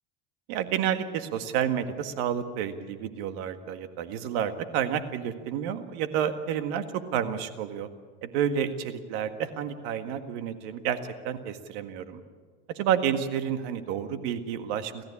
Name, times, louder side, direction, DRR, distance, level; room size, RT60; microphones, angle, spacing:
voice 1, 0.5-7.9 8.2-12.2 12.7-15.0, right 9 dB, 75° right, 8 dB, 1.8 m, -30 dB
28.5 x 14.5 x 8.6 m, 1.5 s
supercardioid pair, 105°, 32 cm